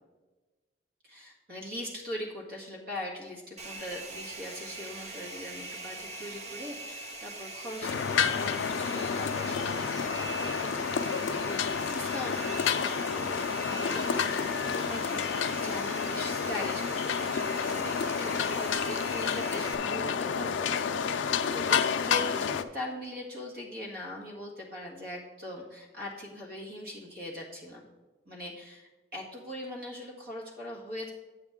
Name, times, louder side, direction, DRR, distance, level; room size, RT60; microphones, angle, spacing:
voice 1, 1.0-27.8 28.3-31.1, left 1 dB, 55° right, -1 dB, 1.9 m, -41 dB
Domestic sounds home sounds, 3.6-19.8, right 3 dB, 35° right, 0.7 m, -42 dB
sound 1, 7.8-22.6, left 6 dB, 85° left, 0.4 m, -30 dB
8.7 x 7.1 x 3.7 m, 1.2 s
head